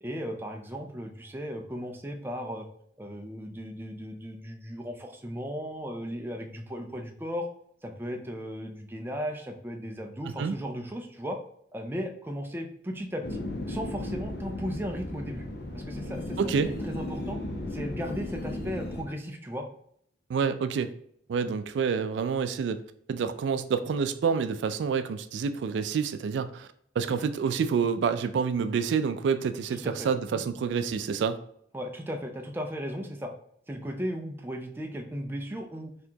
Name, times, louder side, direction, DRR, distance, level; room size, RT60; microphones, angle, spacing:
voice 1, 0.0-2.7 3.0-7.5 7.8-11.4 11.7-15.4 15.7-17.4 17.7-19.7 29.7-30.4 31.7-33.3 33.7-35.9, equal, 10° right, 3 dB, 0.4 m, -36 dB
sound 1, 13.2-19.0, left 1 dB, 60° left, 0.6 m, -35 dB
voice 2, 20.3-20.9 21.3-22.8 23.1-26.7 27.0-31.4, right 6 dB, 80° right, 11 dB, 0.3 m, -28 dB
4.2 x 2.8 x 2.8 m, 0.67 s
head